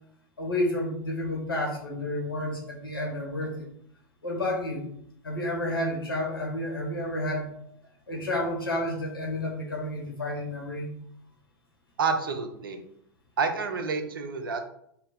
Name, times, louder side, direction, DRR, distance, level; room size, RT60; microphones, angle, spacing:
voice 1, 0.4-3.7 4.2-4.8 5.2-7.5 8.1-10.9, left 1 dB, 85° left, -2 dB, 1.3 m, -30 dB
voice 2, 12.0-12.8 13.4-14.6, right 5 dB, 70° right, 7 dB, 0.6 m, -28 dB
4.1 x 2.0 x 3.9 m, 0.70 s
figure-of-eight pair, 90°, 12 cm